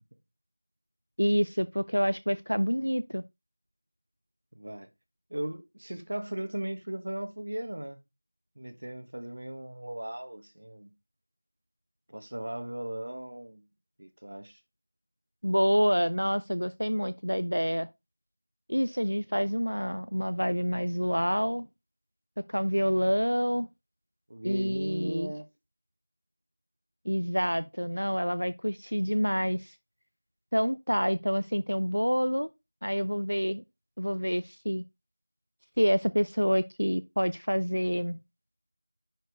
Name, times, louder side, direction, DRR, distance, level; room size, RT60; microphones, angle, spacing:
voice 1, 1.2-3.2 15.4-17.9 18.7-21.7 22.5-23.7 24.4-25.3 27.0-29.7 30.5-32.5 32.8-33.6 34.0-34.8 35.8-38.2, equal, 90° right, 0.6 m, -27 dB
voice 2, 4.5-4.9 5.3-8.0 8.6-10.9 12.1-13.6 14.0-14.6 24.3-25.5, right 1 dB, 50° right, 1.4 m, -37 dB
10.5 x 4.6 x 3.5 m
figure-of-eight pair, 175°, 0 cm